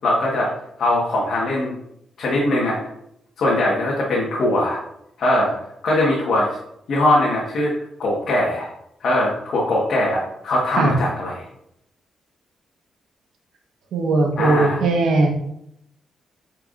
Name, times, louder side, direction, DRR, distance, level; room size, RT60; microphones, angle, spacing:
voice 1, 0.0-0.5 0.8-1.7 2.2-2.8 3.4-4.8 5.2-5.5 5.8-6.5 6.9-7.7 8.0-8.7 9.0-11.4 14.4-14.8, left 1 dB, 60° left, -4 dB, 1.4 m, -20 dB
voice 2, 13.9-15.3, right 3 dB, 85° right, 2 dB, 1.2 m, -18 dB
8.9 x 4.6 x 2.5 m, 0.77 s
cardioid pair, 135°, 0 cm